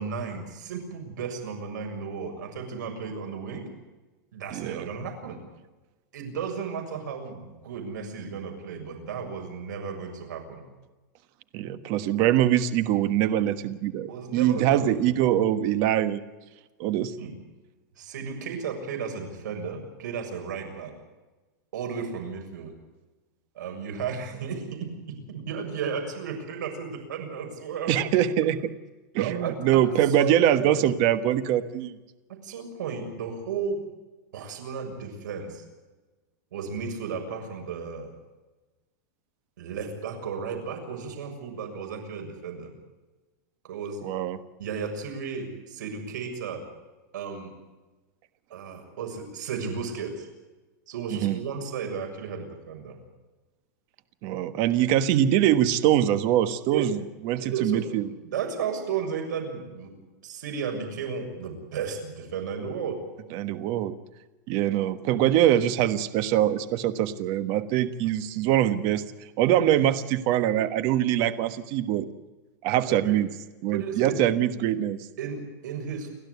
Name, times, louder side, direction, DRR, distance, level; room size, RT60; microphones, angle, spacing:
voice 1, 0.0-3.7 4.3-5.4 6.1-10.6 14.1-15.1 17.2-17.3 18.0-20.9 21.7-22.7 23.6-28.0 29.2-30.9 32.4-33.9 34.3-35.6 36.5-38.1 39.6-42.7 43.6-44.0 44.6-46.6 47.1-47.5 48.5-50.3 50.9-53.0 56.7-56.9 57.4-57.9 58.2-59.9 60.2-63.0 72.9-73.2 73.7-74.3 75.2-76.1, right 6 dB, 75° right, 3 dB, 6.9 m, -34 dB
voice 2, 4.5-4.9 11.5-16.2 16.8-17.1 27.9-28.7 29.1-31.9 44.0-44.4 51.1-51.4 54.2-57.0 57.2-58.1 63.3-63.9 64.5-69.0 69.4-72.1 72.6-73.3 73.6-75.0, right 11 dB, 35° right, 12 dB, 1.3 m, -23 dB
30.0 x 11.5 x 8.3 m, 1.2 s
supercardioid pair, 165°, 10 cm